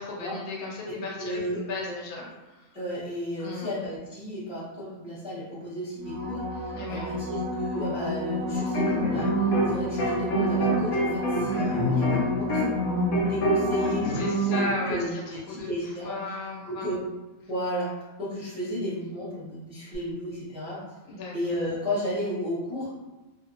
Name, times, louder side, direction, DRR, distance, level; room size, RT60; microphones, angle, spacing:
voice 1, 0.0-2.2 3.4-3.7 6.7-7.1 14.1-15.7 16.0-16.9 21.1-21.3, left 2 dB, 85° left, -3 dB, 1.1 m, -35 dB
voice 2, 1.2-2.0 2.7-14.6 14.9-16.2 16.7-17.0 17.5-17.9 18.2-20.8 21.3-22.9, left 1 dB, 5° right, -11 dB, 0.5 m, -33 dB
sound 1, 6.0-14.6 19.9-20.0, left 2 dB, 65° right, 0.8 m, -31 dB
sound 2, 8.6-9.7 10.0-14.7, right 2 dB, 65° left, 0.9 m, -26 dB
2.6 x 2.0 x 2.6 m, 1.1 s
omnidirectional pair, 1.5 m